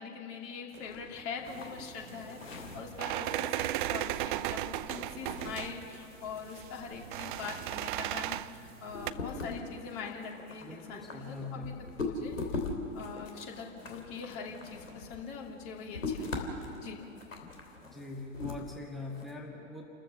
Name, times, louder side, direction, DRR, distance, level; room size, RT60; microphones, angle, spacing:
voice 1, 0.0-8.4 8.8-11.7 12.0-12.6 12.9-16.3 16.8-17.0, left 5 dB, 35° left, 1 dB, 2.7 m, -43 dB
sound 1, 0.7-19.3, left 3 dB, 80° left, 3.1 m, -42 dB
sound 2, 1.5-9.1, right 14 dB, 40° right, 0.6 m, -36 dB
voice 2, 10.6-11.8 17.8-19.8, left 3 dB, ahead, -2 dB, 1.9 m, -42 dB
29.5 x 14.0 x 6.6 m, 2.8 s
figure-of-eight pair, 100°, 38 cm